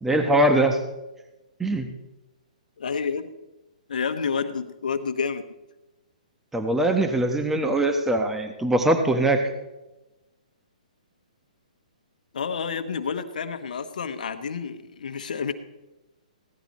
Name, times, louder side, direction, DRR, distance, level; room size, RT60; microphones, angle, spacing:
voice 1, 0.0-0.8 1.6-1.9 6.5-9.5, right 1 dB, 5° right, 6 dB, 1.0 m, -22 dB
voice 2, 2.8-3.3 3.9-5.4 12.3-15.5, left 6 dB, 75° left, 8 dB, 1.2 m, -29 dB
16.5 x 11.5 x 4.2 m, 1.0 s
hypercardioid pair, 140°, 4 cm